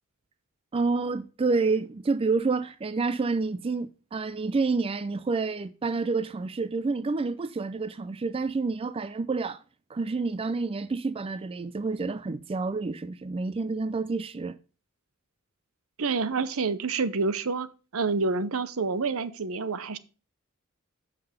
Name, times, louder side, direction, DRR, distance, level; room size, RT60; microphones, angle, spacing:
voice 1, 0.7-9.6 9.9-14.6, right 4 dB, 25° right, 0.4 m, -28 dB
voice 2, 16.0-17.7 17.9-20.0, right 4 dB, 75° right, 0.7 m, -28 dB
7.5 x 5.8 x 5.0 m
head